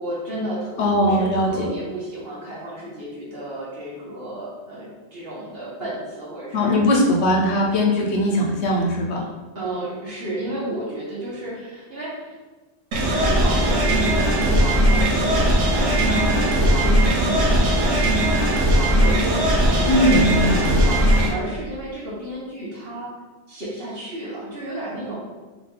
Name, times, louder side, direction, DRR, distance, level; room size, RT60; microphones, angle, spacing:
voice 1, 0.0-6.8 9.5-12.4 13.1-21.0 21.3-23.1 23.5-25.2, right 1 dB, 55° right, -6 dB, 1.5 m, -32 dB
voice 2, 0.8-1.7 6.5-9.3 19.9-21.0, left 1 dB, 70° left, 0 dB, 1.0 m, -20 dB
sound 1, 12.9-21.3, right 1 dB, 85° right, 1.1 m, -19 dB
3.8 x 3.2 x 3.7 m, 1.3 s
omnidirectional pair, 1.2 m